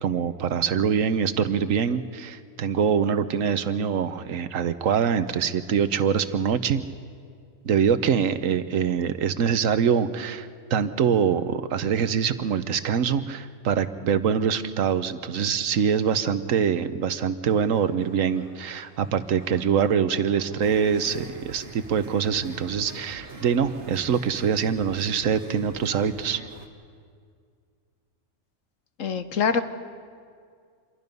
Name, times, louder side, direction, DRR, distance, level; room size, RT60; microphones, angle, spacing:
voice 1, 0.0-6.8 7.6-26.4, right 7 dB, 85° right, 12 dB, 1.3 m, -24 dB
sound 1, 17.7-23.6, right 1 dB, 15° right, 3.5 m, -51 dB
sound 2, 20.6-26.7, right 4 dB, 60° right, 1.9 m, -44 dB
voice 2, 29.0-29.6, left 6 dB, 85° left, 10 dB, 1.4 m, -24 dB
27.0 x 23.0 x 5.4 m, 2.2 s
omnidirectional pair, 1.3 m